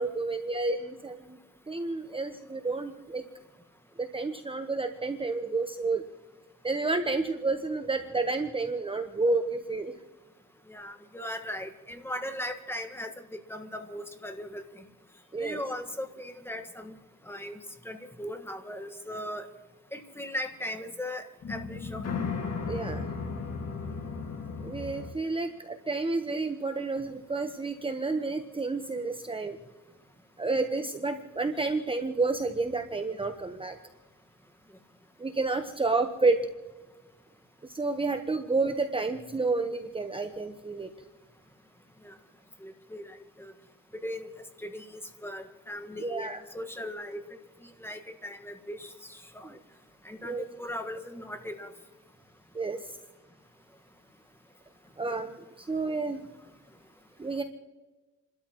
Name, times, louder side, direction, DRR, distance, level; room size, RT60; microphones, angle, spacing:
voice 1, 0.0-1.4 1.7-3.2 4.0-6.0 6.6-9.9 15.3-15.6 22.7-23.1 24.6-29.6 30.4-33.7 35.2-36.4 37.7-40.9 46.0-46.4 50.2-50.4 52.5-52.8 55.0-56.2 57.2-57.4, right 3 dB, 20° right, 6 dB, 1.0 m, -30 dB
voice 2, 10.7-14.8 15.4-16.9 17.2-19.5 19.9-22.1 42.0-42.2 42.6-43.5 43.9-44.3 44.6-47.2 47.6-49.6 50.0-51.7, left 1 dB, 10° left, 7 dB, 1.6 m, -38 dB
sound 1, 21.4-25.1, left 5 dB, 55° left, 2.0 m, -35 dB
29.5 x 13.0 x 3.1 m, 1.1 s
cardioid pair, 90°, 30 cm